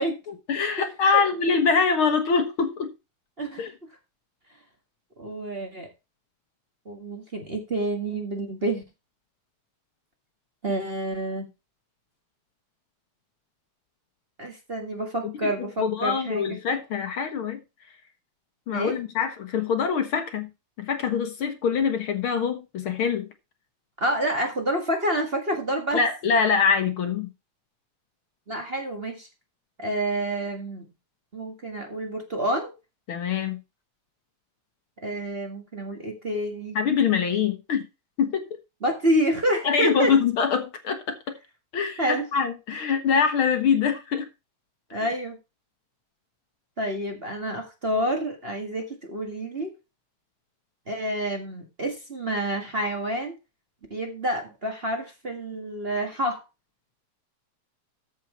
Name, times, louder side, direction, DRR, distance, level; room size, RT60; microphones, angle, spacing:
voice 1, 0.3-2.9 3.6-3.7 15.2-15.5 15.8-17.6 18.7-20.5 20.8-23.3 25.9-27.3 33.1-33.6 36.8-37.9 38.2-38.4 39.6-41.4 41.7-44.3 44.9-45.1, left 6 dB, 55° left, 1.7 m, -24 dB
voice 2, 5.2-5.9 6.8-8.8 10.6-11.5 14.4-16.4 18.7-18.9 24.0-26.0 28.5-29.3 29.8-30.8 31.3-32.7 35.0-36.8 38.8-40.1 42.0-42.2 44.9-45.4 46.8-49.7 50.9-53.3 53.9-56.4, right 1 dB, 25° right, 1.5 m, -28 dB
14.0 x 6.1 x 4.4 m
omnidirectional pair, 3.3 m